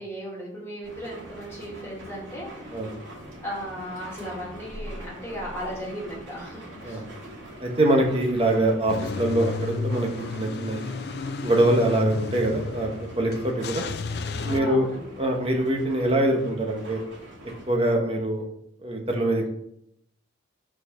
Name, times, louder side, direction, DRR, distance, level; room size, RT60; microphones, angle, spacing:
voice 1, 0.0-2.8 3.4-7.1 14.4-15.1, equal, 15° left, -5 dB, 2.2 m, -36 dB
sound 1, 0.8-17.7, right 1 dB, 85° right, 2.7 m, -43 dB
voice 2, 7.6-10.1 10.4-10.9 11.4-12.9 13.2-13.9 14.4-14.9 15.2-17.0 17.7-18.4 18.8-19.5, right 1 dB, 30° right, 2 dB, 1.0 m, -23 dB
Car / Engine starting / Idling, 8.9-14.6, left 3 dB, 55° left, 0.4 m, -33 dB
4.7 x 4.6 x 5.7 m, 0.73 s
head